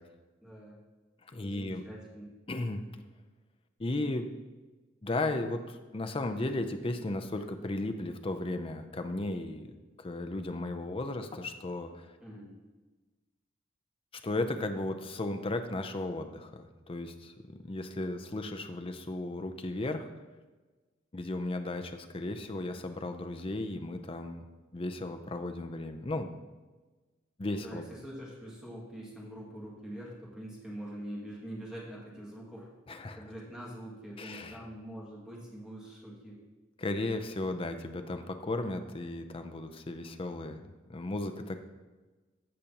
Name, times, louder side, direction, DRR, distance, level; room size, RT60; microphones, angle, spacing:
voice 1, 0.4-0.8 1.4-2.2 12.2-12.5 27.4-32.7 33.1-36.4, right 1 dB, 5° right, -6 dB, 2.1 m, -44 dB
voice 2, 1.3-1.8 2.5-2.8 3.8-4.3 5.0-9.7 10.0-12.1 14.2-20.1 21.1-24.5 24.7-26.3 27.4-27.8 32.9-33.2 34.2-34.6 36.8-41.6, left 2 dB, 30° left, 7 dB, 0.5 m, -35 dB
15.5 x 5.2 x 2.9 m, 1.3 s
head